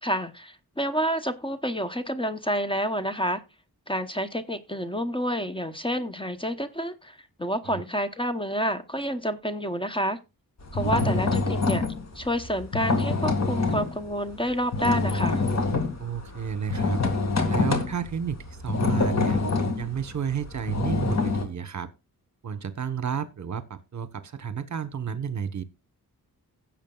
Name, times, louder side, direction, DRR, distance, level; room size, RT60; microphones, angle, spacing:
voice 1, 0.0-3.4 3.9-10.2 10.7-11.8 12.1-15.4, equal, 15° left, 0.9 m, -29 dB
sound 1, 10.6-14.0 14.3-21.5, left 3 dB, 50° left, 2.2 m, -26 dB
voice 2, 10.7-11.3 16.0-17.0 17.5-19.4 19.8-21.9 22.4-25.6, right 7 dB, 55° right, 1.2 m, -31 dB
16.5 x 7.3 x 2.4 m
wide cardioid pair, 105°, 35 cm